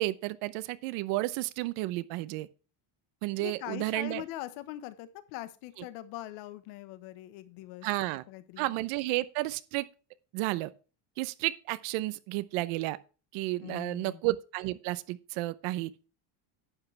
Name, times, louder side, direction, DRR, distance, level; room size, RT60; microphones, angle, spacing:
voice 1, 0.0-2.5 3.2-4.2 7.8-8.2 8.6-9.9 10.3-10.7 11.2-13.0 13.3-15.9, right 18 dB, 90° right, 0.9 m, -32 dB
voice 2, 3.4-7.9 8.3-8.7 13.6-14.2, left 14 dB, 85° left, 1.3 m, -42 dB
11.5 x 8.2 x 3.3 m
cardioid pair, 155°, 49 cm